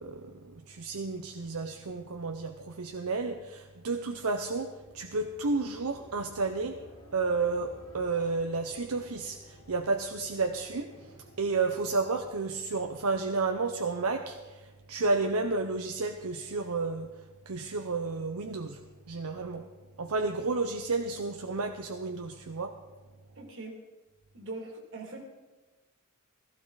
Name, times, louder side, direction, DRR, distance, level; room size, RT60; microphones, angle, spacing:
voice 1, 0.0-6.8 7.1-18.8 19.1-19.7 20.0-22.8, right 3 dB, 85° right, 5 dB, 0.7 m, -32 dB
sound 1, 4.5-13.5, left 1 dB, 60° left, 2.5 m, -55 dB
voice 2, 23.4-23.8 24.3-25.2, right 2 dB, 65° right, 2 dB, 2.6 m, -41 dB
15.5 x 14.5 x 4.0 m, 1.2 s
head